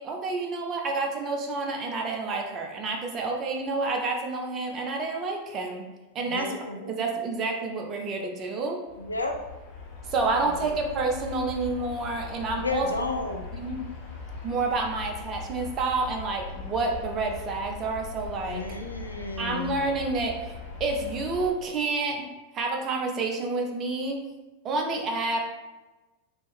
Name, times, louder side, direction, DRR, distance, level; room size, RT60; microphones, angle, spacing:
voice 1, 0.0-5.9 6.1-6.5 7.0-8.8 10.1-12.9 13.5-13.8 14.4-18.6 19.4-20.4 20.8-22.3 22.5-24.2 24.6-25.5, right 3 dB, 30° right, 2 dB, 0.5 m, -29 dB
voice 2, 6.3-6.9 9.0-9.4 12.6-13.4 18.5-19.8, left 3 dB, 80° left, 3 dB, 0.3 m, -32 dB
sound 1, 8.9-21.5, left 4 dB, 35° left, 0.8 m, -40 dB
3.0 x 2.1 x 3.2 m, 1.1 s
figure-of-eight pair, 90°, 0 cm